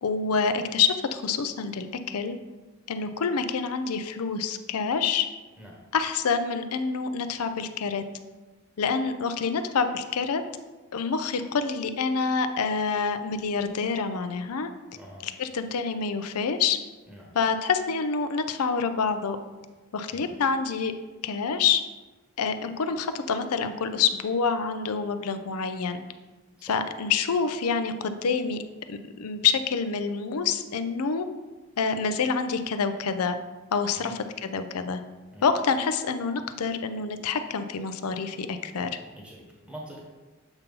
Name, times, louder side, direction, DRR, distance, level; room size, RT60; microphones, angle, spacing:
voice 1, 0.0-2.4 2.9-5.3 5.9-8.0 8.8-10.4 10.9-14.7 15.2-16.8 17.3-19.4 19.9-20.9 21.2-21.8 22.4-26.0 26.6-28.6 28.9-31.3 31.8-33.4 33.7-35.0 35.4-38.9, left 5 dB, 85° left, 9 dB, 0.5 m, -27 dB
voice 2, 15.0-15.3 17.1-17.3 20.1-20.3 26.6-26.8 33.9-34.1 35.3-35.5 39.1-40.0, equal, 5° right, -3 dB, 1.1 m, -44 dB
8.0 x 2.8 x 5.3 m, 1.2 s
head